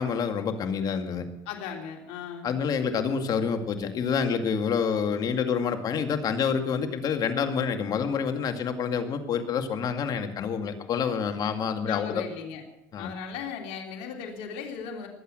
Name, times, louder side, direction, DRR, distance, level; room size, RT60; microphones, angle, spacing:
voice 1, 0.0-1.3 2.4-12.2 12.9-13.1, left 6 dB, 50° left, 7 dB, 2.2 m, -27 dB
voice 2, 1.4-2.5 11.8-12.6 13.0-15.1, left 7 dB, 80° left, 1 dB, 3.2 m, -37 dB
21.5 x 8.4 x 7.8 m, 0.91 s
supercardioid pair, 105°, 9 cm